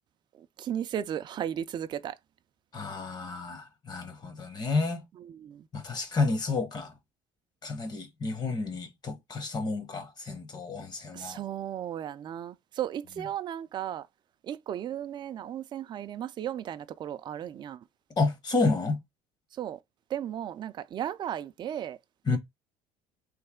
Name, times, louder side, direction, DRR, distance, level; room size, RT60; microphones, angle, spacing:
voice 1, 0.3-2.1 5.2-5.7 11.1-14.1 14.4-17.8 19.5-19.8 20.1-22.0 22.3-22.4, right 10 dB, 35° right, 0.3 m, -35 dB
voice 2, 2.7-5.0 5.7-6.9 7.6-11.4 18.2-19.0 22.3-22.4, left 3 dB, 30° left, 1.0 m, -30 dB
3.2 x 2.7 x 3.6 m
cardioid pair, 115°, 13 cm